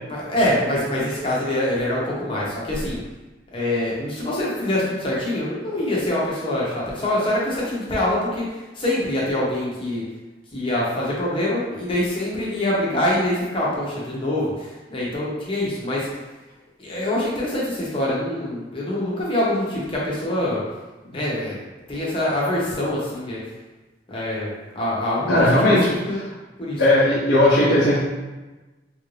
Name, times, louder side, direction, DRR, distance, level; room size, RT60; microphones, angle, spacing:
voice 1, 0.1-3.0 3.5-10.0 10.5-16.1 16.8-20.6 21.1-21.6 21.9-23.4 24.1-26.2 26.6-26.8, left 1 dB, 30° left, -6 dB, 0.9 m, -24 dB
voice 2, 25.3-25.9 26.8-28.0, left 1 dB, 90° left, -9 dB, 0.8 m, -17 dB
3.5 x 2.5 x 3.2 m, 1.2 s
head